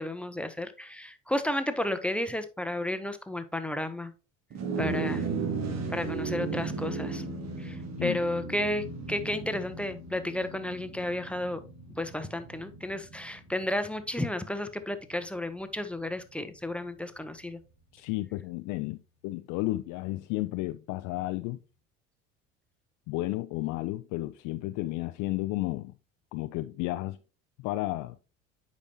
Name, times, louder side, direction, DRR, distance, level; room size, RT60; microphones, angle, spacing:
voice 1, 0.0-4.1 4.8-5.2 5.9-7.2 7.6-11.6 12.0-17.6, left 1 dB, 5° left, 0.7 m, -32 dB
sound 1, 4.5-14.1, right 6 dB, 45° right, 1.3 m, -36 dB
sound 2, 4.8-15.5, left 5 dB, 75° left, 1.1 m, -43 dB
voice 2, 17.9-21.6 23.1-26.0 26.3-27.2 27.6-28.2, left 18 dB, 55° left, 0.5 m, -32 dB
8.3 x 5.2 x 2.8 m
hypercardioid pair, 60°, 37 cm